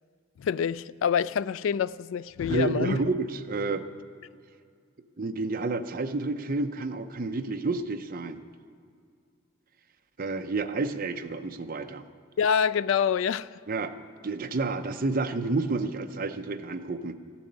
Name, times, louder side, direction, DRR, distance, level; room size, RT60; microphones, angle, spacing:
voice 1, 0.4-3.0 12.4-13.5, left 7 dB, 65° left, 0.3 m, -26 dB
voice 2, 2.5-3.8 5.2-8.4 10.2-12.0 13.7-13.9 14.2-17.1, right 3 dB, 45° right, 0.7 m, -30 dB
15.0 x 7.1 x 9.8 m
head